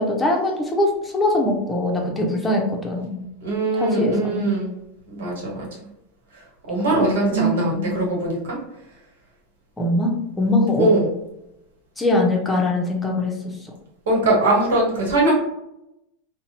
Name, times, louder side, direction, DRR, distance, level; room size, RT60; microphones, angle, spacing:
voice 1, 0.0-3.2 3.7-4.6 6.9-8.0 9.8-10.9 12.0-13.7, left 1 dB, 15° left, 0 dB, 0.7 m, -22 dB
voice 2, 3.4-4.7 5.1-5.7 6.7-8.6 10.8-11.1 14.1-15.3, right 2 dB, 80° right, -2 dB, 1.0 m, -21 dB
2.6 x 2.1 x 2.7 m, 0.85 s
hypercardioid pair, 105°, 0 cm